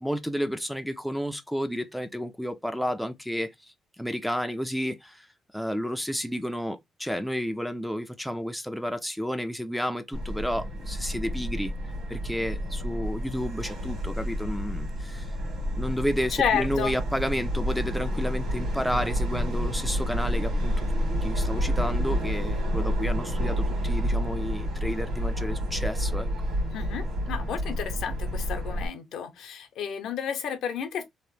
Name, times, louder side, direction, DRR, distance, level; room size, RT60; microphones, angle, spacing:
voice 1, 0.0-3.5 4.0-5.3 5.5-11.7 12.1-15.3 15.8-20.9 21.2-26.3, equal, ahead, 0.3 m, -31 dB
Subway metro underground, 10.1-28.9, equal, 65° right, 1.5 m, -29 dB
voice 2, 16.3-16.9 26.7-31.0, left 8 dB, 75° left, 0.7 m, -31 dB
2.8 x 2.0 x 3.1 m
cardioid pair, 130°, 0 cm